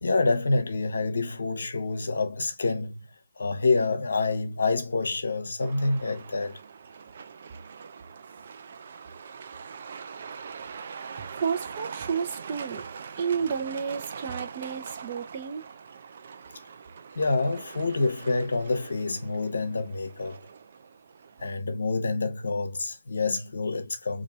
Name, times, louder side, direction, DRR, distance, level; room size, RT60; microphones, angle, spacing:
voice 1, 0.0-3.1 3.4-6.6 17.2-20.4 21.4-24.2, left 3 dB, 70° left, 0.8 m, -27 dB
Truck, 5.6-21.4, right 6 dB, 50° right, 0.4 m, -43 dB
voice 2, 11.2-12.9 13.2-15.7, right 6 dB, 35° right, 0.8 m, -31 dB
2.7 x 2.6 x 4.2 m
figure-of-eight pair, 145°, 0 cm